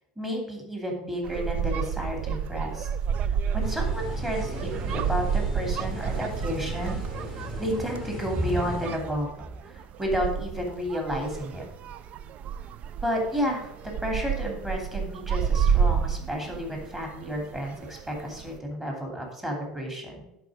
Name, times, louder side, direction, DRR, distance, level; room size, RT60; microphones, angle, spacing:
voice 1, 0.2-2.9 3.5-7.0 7.3-9.3 9.6-11.7 13.0-20.3, equal, 10° right, 1 dB, 2.8 m, -31 dB
sound 1, 1.2-18.6, right 7 dB, 45° right, 0.5 m, -30 dB
sound 2, 3.6-9.0, equal, 30° right, 3.7 m, -36 dB
10.5 x 4.8 x 5.0 m, 0.95 s
hypercardioid pair, 80°, 3 cm